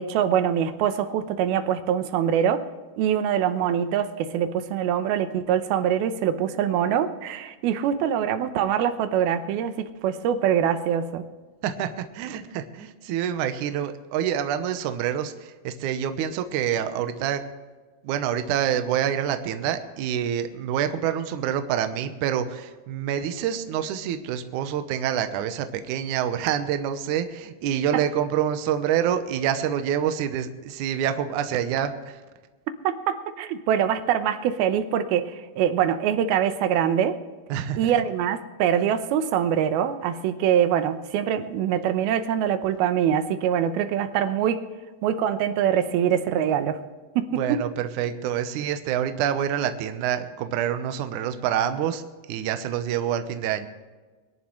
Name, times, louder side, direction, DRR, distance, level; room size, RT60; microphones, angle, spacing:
voice 1, 0.0-2.7 3.0-11.2 32.8-37.2 37.8-44.6 45.0-46.8 47.2-47.3, right 9 dB, 90° right, 9 dB, 2.8 m, -24 dB
voice 2, 11.6-17.4 18.0-32.2 37.5-37.9 47.3-52.0 52.3-53.7, right 9 dB, 70° right, 8 dB, 2.1 m, -27 dB
23.5 x 11.0 x 3.2 m, 1.3 s
omnidirectional pair, 4.2 m